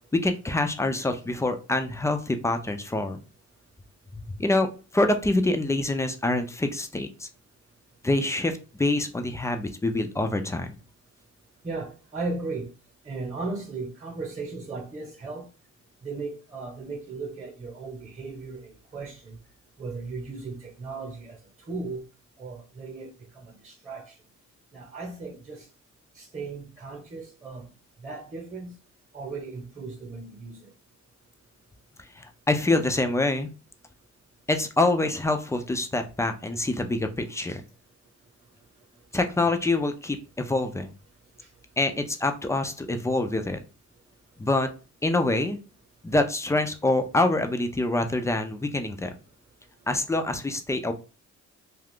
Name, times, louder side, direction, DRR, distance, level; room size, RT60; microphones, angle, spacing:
voice 1, 0.2-3.2 4.4-4.7 4.9-7.3 8.0-10.8 32.2-33.5 34.5-37.6 39.1-40.9 41.8-43.6 44.4-44.7 45.0-45.6 46.0-49.1 49.9-50.9, left 2 dB, 10° left, 0.4 m, -25 dB
voice 2, 11.6-12.7 13.0-15.4 16.0-18.6 18.9-19.4 19.8-21.4 21.7-22.0 22.4-23.1 23.4-24.0 24.7-25.6 26.2-27.6 28.0-28.7 29.1-30.6, right 3 dB, 25° right, 1.0 m, -36 dB
2.4 x 2.4 x 3.5 m
cardioid pair, 90°, 30 cm